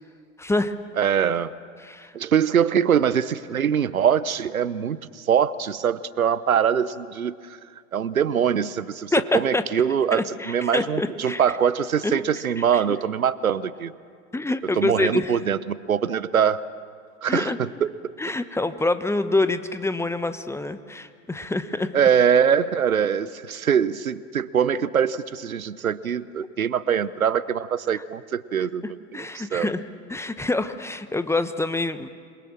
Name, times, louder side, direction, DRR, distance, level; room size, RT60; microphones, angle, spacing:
voice 1, 0.4-0.7 1.8-2.1 9.1-9.6 10.1-11.4 12.0-12.2 14.3-15.4 17.3-17.6 18.2-21.9 27.9-28.0 28.8-29.8 30.1-32.1, left 2 dB, 5° left, 11 dB, 1.0 m, -26 dB
voice 2, 1.0-1.5 2.1-7.4 7.9-13.9 14.8-16.6 17.2-18.1 21.9-29.7, right 8 dB, 85° right, 17 dB, 0.9 m, -23 dB
27.5 x 22.0 x 7.5 m, 2.1 s
figure-of-eight pair, 90°, 41 cm